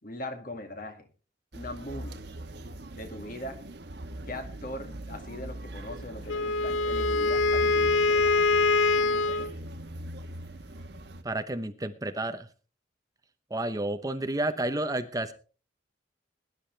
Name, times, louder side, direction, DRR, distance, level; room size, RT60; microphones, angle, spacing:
voice 1, 0.0-1.1 1.5-2.2 2.9-3.6 4.3-8.5 9.0-9.5, left 1 dB, 45° left, 6 dB, 2.1 m, -40 dB
sound 1, 1.5-11.2, right 1 dB, 60° right, 1.2 m, -40 dB
Wind instrument woodwind instrument, 6.3-9.5, left 3 dB, 90° left, 0.6 m, -24 dB
voice 2, 11.2-12.5 13.5-15.3, right 1 dB, 20° right, 10 dB, 0.8 m, -31 dB
20.5 x 10.5 x 3.3 m, 0.37 s
head